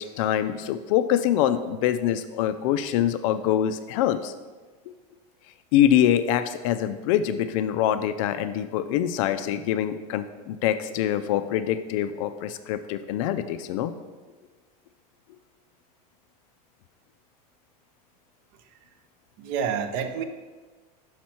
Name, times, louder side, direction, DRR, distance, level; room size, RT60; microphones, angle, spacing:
voice 1, 0.0-4.3 5.7-13.9, left 11 dB, 55° left, 11 dB, 0.4 m, -24 dB
voice 2, 19.4-20.2, right 7 dB, 45° right, 7 dB, 0.7 m, -29 dB
6.2 x 5.9 x 4.3 m, 1.4 s
supercardioid pair, 155°, 20 cm